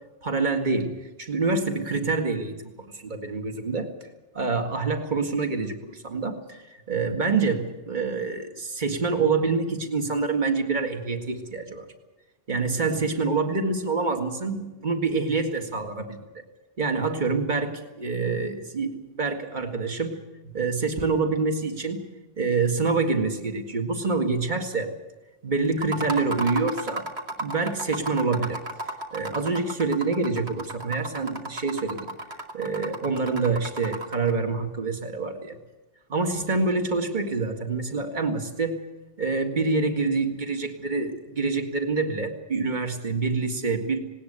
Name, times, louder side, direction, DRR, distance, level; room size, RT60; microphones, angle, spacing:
voice 1, 0.2-0.9 1.2-2.6 2.9-3.9 4.3-11.9 12.5-16.2 16.8-20.2 20.4-22.0 22.4-24.9 25.4-27.1 27.4-28.6 29.1-32.1 32.5-35.6 36.1-38.8 39.2-44.0, right 4 dB, 45° right, 4 dB, 2.2 m, -26 dB
sound 1, 25.7-34.3, right 1 dB, 80° right, 2.9 m, -34 dB
19.0 x 19.0 x 8.1 m, 1.1 s
omnidirectional pair, 1.1 m